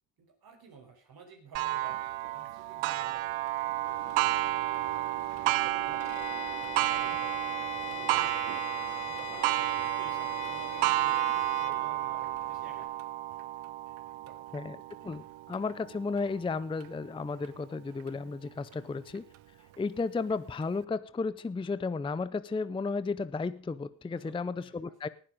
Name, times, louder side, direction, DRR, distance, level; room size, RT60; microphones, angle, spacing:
voice 1, 0.2-2.0 2.3-6.2 6.6-8.4 9.0-13.5 14.1-14.8 18.6-19.0 24.1-25.1, right 5 dB, 50° right, 3 dB, 4.6 m, -53 dB
Clock, 1.5-16.9 17.4-17.5 18.1-18.2 19.1-19.2, right 16 dB, 85° right, 0.9 m, -32 dB
sound 1, 3.8-12.9, left 5 dB, 40° left, 3.5 m, -51 dB
Bowed string instrument, 6.0-11.8, left 10 dB, 90° left, 2.2 m, -43 dB
voice 2, 15.0-19.3 19.8-25.1, left 4 dB, 10° left, 16 dB, 0.5 m, -33 dB
19.0 x 7.2 x 5.1 m, 0.41 s
cardioid pair, 95°, 45 cm